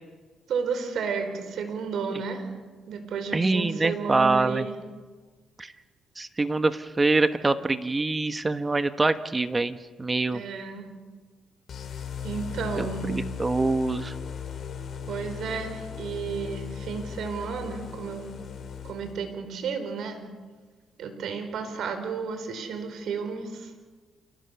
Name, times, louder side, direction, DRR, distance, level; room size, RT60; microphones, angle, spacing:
voice 1, 0.5-2.5 2.9-4.8 10.3-10.9 12.2-13.1 15.1-18.3 18.8-20.2 21.0-23.7, right 5 dB, 70° right, 7 dB, 4.7 m, -32 dB
voice 2, 3.3-4.6 5.6-5.7 6.2-10.4 12.8-14.1, right 3 dB, 20° right, 10 dB, 1.2 m, -25 dB
sound 1, 11.7-19.3, left 7 dB, 55° left, 2.9 m, -37 dB
28.5 x 18.0 x 7.0 m, 1.4 s
cardioid pair, 90°, 0 cm